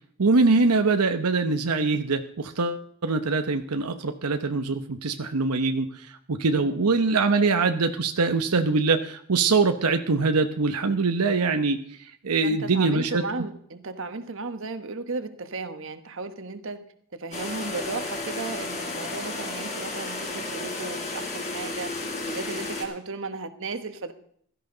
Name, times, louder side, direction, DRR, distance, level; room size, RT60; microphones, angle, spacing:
voice 1, 0.2-5.9 6.3-11.8 12.2-13.2, right 3 dB, 90° right, 7 dB, 0.9 m, -23 dB
voice 2, 12.4-16.8 17.1-21.9 22.2-24.1, right 3 dB, 60° right, 9 dB, 1.3 m, -35 dB
sound 1, 17.3-22.8, left 2 dB, 30° left, 3.9 m, -33 dB
16.5 x 13.0 x 3.9 m, 0.64 s
head